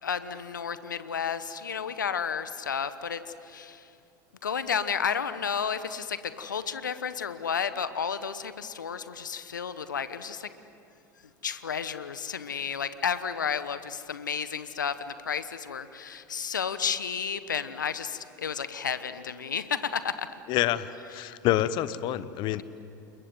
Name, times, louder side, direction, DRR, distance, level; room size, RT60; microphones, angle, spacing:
voice 1, 0.0-3.9 4.4-10.5 11.4-20.4 21.2-21.3, left 7 dB, 85° left, 13 dB, 1.1 m, -32 dB
voice 2, 20.5-22.6, left 13 dB, 50° left, 15 dB, 1.1 m, -27 dB
29.0 x 21.5 x 7.8 m, 2.6 s
hypercardioid pair, 80°, 10 cm